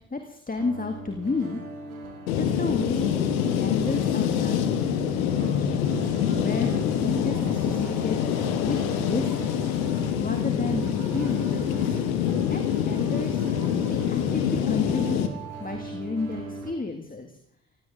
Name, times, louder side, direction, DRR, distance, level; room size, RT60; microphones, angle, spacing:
voice 1, 0.1-1.6 2.4-3.2 3.4-5.9 6.4-8.2 8.6-9.6 10.2-12.0 12.5-13.4 13.9-15.3 15.6-17.3, left 3 dB, 20° left, 5 dB, 2.0 m, -32 dB
sound 1, 0.6-16.7, right 4 dB, 85° right, 1.8 m, -40 dB
sound 2, 2.3-15.3, left 9 dB, 75° left, 1.3 m, -25 dB
sound 3, 5.8-15.8, right 5 dB, 55° right, 2.1 m, -46 dB
18.5 x 17.0 x 3.7 m, 0.66 s
figure-of-eight pair, 45°, 41 cm